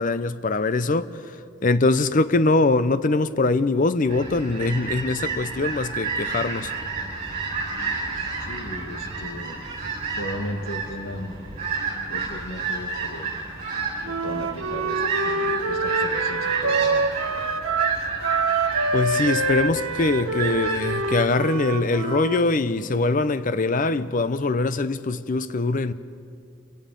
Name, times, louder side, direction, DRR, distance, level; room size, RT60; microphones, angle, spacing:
voice 1, 0.0-1.4 1.6-6.7 18.9-25.9, left 3 dB, 40° left, 0.6 m, -23 dB
sound 1, 4.1-21.2, right 4 dB, 35° right, 6.8 m, -30 dB
voice 2, 8.4-9.6 10.2-11.6 12.1-13.3 14.0-17.1, left 1 dB, 70° left, 1.5 m, -36 dB
Wind instrument woodwind instrument, 14.0-22.5, right 3 dB, 80° right, 1.1 m, -26 dB
28.5 x 17.5 x 5.3 m
head